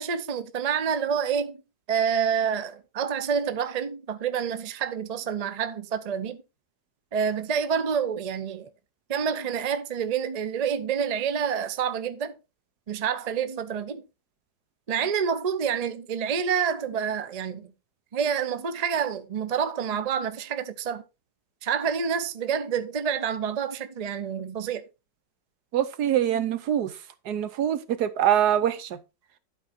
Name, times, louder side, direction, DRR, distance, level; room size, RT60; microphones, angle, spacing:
voice 1, 0.0-1.6 1.9-6.4 7.1-8.7 9.1-12.3 12.9-14.0 14.9-17.7 18.1-21.0 21.6-24.9, right 7 dB, 85° right, 0.3 m, -28 dB
voice 2, 25.7-27.0 27.3-29.0, right 10 dB, 65° right, 1.3 m, -24 dB
11.5 x 4.8 x 4.1 m
omnidirectional pair, 1.9 m